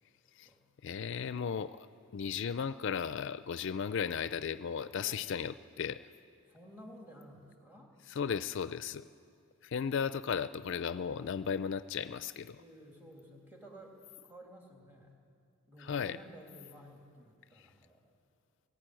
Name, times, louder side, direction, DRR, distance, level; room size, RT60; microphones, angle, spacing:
voice 1, 0.8-1.9 2.1-6.0 8.2-9.1 9.6-12.6 15.8-16.2, left 7 dB, 60° left, 14 dB, 0.4 m, -35 dB
voice 2, 6.5-7.9 12.6-15.1 15.7-18.1, right 1 dB, 10° right, 0 dB, 2.7 m, -53 dB
19.0 x 15.0 x 9.1 m, 2.3 s
head